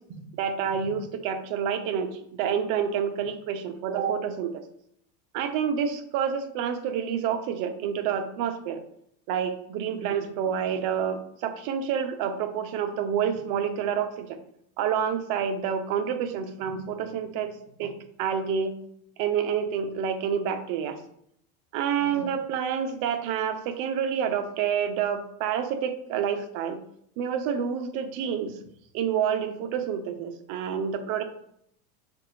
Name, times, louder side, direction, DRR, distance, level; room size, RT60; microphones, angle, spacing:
voice 1, 0.1-4.6 5.3-8.8 9.3-14.4 14.8-17.5 17.8-18.8 19.2-21.0 21.7-26.8 27.2-28.6 28.9-31.2, right 8 dB, 45° right, 7 dB, 0.7 m, -28 dB
5.9 x 2.6 x 3.1 m, 0.71 s
supercardioid pair, 130°, 46 cm